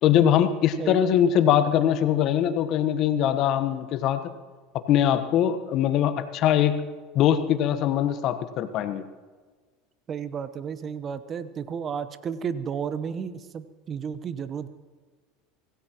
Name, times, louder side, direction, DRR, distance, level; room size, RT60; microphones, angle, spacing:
voice 1, 0.0-4.2 4.9-6.8 7.1-9.0, left 10 dB, 55° left, 11 dB, 1.1 m, -22 dB
voice 2, 10.1-14.7, right 7 dB, 35° right, 13 dB, 1.0 m, -32 dB
25.5 x 17.5 x 3.0 m, 1.4 s
hypercardioid pair, 80°, 0 cm